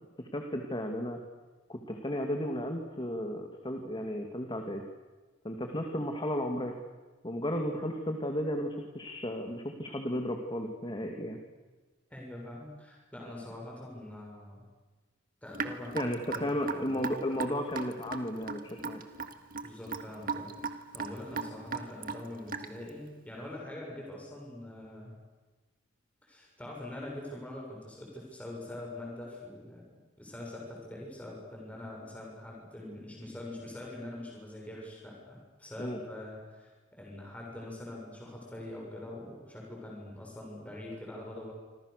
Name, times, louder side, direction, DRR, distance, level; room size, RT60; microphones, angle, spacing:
voice 1, 0.2-1.2 1.7-4.8 5.4-6.8 7.2-11.4 15.9-19.0 35.8-36.0, equal, 25° left, 3 dB, 2.4 m, -34 dB
voice 2, 12.1-14.7 15.4-16.5 16.8-16.9 19.6-25.1 26.2-29.9 30.2-41.5, left 1 dB, 5° left, -2 dB, 6.7 m, -44 dB
Raindrop / Drip, 15.5-22.9, right 5 dB, 45° right, 1.9 m, -37 dB
28.5 x 26.0 x 6.8 m, 1.2 s
head